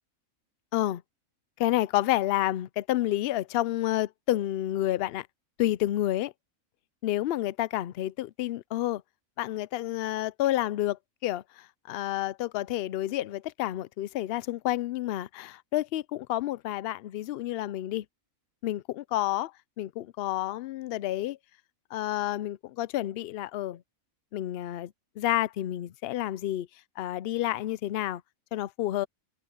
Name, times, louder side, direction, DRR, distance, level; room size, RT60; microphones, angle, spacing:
voice 1, 1.6-5.3 5.6-6.3 7.0-9.0 9.4-18.0 18.6-19.5 19.8-21.4 21.9-23.8 24.3-26.7 27.0-28.2 28.5-29.1, left 14 dB, 65° left, 0.6 m, -29 dB
omnidirectional pair, 1.4 m